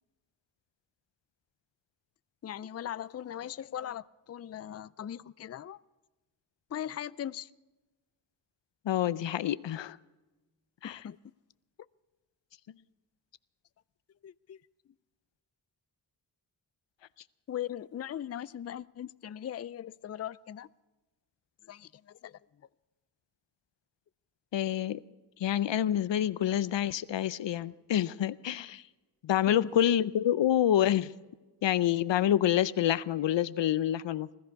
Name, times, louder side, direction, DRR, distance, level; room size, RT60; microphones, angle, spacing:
voice 1, 2.4-5.8 6.7-7.5 10.8-11.2 14.2-14.6 17.5-20.7 21.6-22.4 29.5-29.7, left 10 dB, 40° left, 0.4 m, -39 dB
voice 2, 8.9-10.0 10.8-11.0 24.5-25.0 25.4-28.8 29.2-31.1 31.6-34.4, left 11 dB, 90° left, 0.6 m, -27 dB
20.5 x 14.0 x 4.6 m
wide cardioid pair, 70°, 42 cm